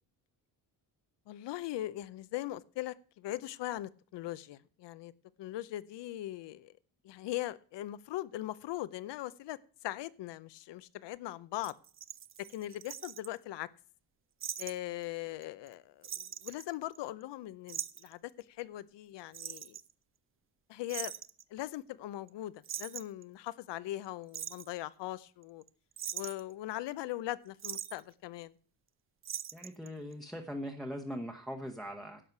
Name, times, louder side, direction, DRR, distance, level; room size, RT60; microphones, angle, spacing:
voice 1, 1.3-5.1 5.4-6.8 7.0-11.7 12.4-13.7 14.6-19.8 20.7-21.1 21.5-25.6 26.1-28.6, left 15 dB, 80° left, 18 dB, 0.7 m, -40 dB
sound 1, 11.6-13.3 14.4-14.7 15.0-15.1 15.4-15.7 16.0-17.2 17.7-18.1 19.3-19.9 20.9-21.4 22.3-22.4 22.6-23.2 24.0-24.7 25.4-25.7 26.0-26.5 27.6-28.0 29.2-29.9 30.1-30.2, right 9 dB, 35° right, 0.4 m, -41 dB
voice 2, 29.5-32.2, equal, ahead, 2 dB, 0.9 m, -41 dB
11.0 x 6.5 x 5.9 m, 0.43 s
cardioid pair, 130°, 41 cm